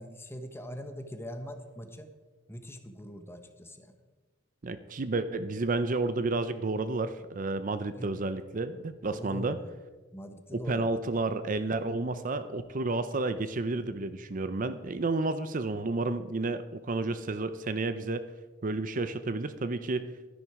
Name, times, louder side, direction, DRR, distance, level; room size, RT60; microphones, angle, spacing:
voice 1, 0.0-2.1 2.5-3.9 8.0-8.1 9.0-9.7 10.1-11.0 12.8-12.9, equal, 15° left, 7 dB, 1.1 m, -42 dB
voice 2, 4.6-9.6 10.5-18.2 18.6-20.1, right 3 dB, 45° right, 12 dB, 0.6 m, -31 dB
12.5 x 10.5 x 4.8 m, 1.3 s
head